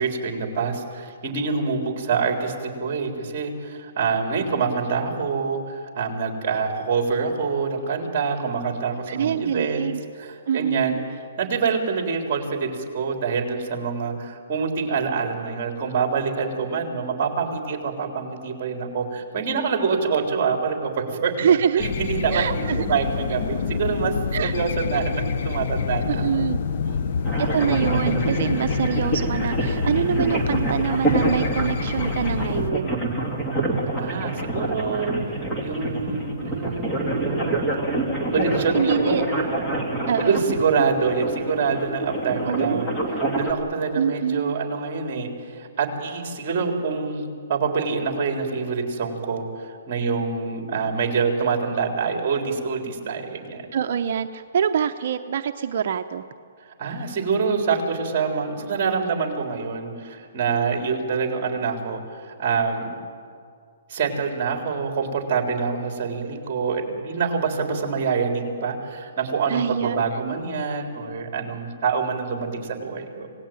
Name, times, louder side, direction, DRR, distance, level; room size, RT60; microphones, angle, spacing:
voice 1, 0.0-9.9 10.1-11.0 11.4-21.5 21.8-22.5 22.8-26.3 26.8-27.0 34.0-35.2 35.6-37.6 38.3-39.1 40.2-43.0 43.3-53.6 56.8-62.9 63.9-73.3, right 5 dB, 30° right, 3 dB, 3.9 m, -26 dB
voice 2, 9.1-10.0 10.5-11.0 21.4-21.8 22.3-22.8 24.3-24.6 26.1-26.6 27.4-33.0 38.7-39.2 40.1-40.4 42.4-42.9 43.9-44.5 53.7-56.2 69.5-70.4, right 8 dB, 50° right, 6 dB, 0.7 m, -25 dB
sound 1, 21.8-32.7, left 5 dB, 50° left, 0.9 m, -27 dB
sound 2, 27.3-43.5, right 2 dB, 10° left, 2.5 m, -26 dB
26.5 x 18.0 x 9.0 m, 2.2 s
hypercardioid pair, 165°, 0 cm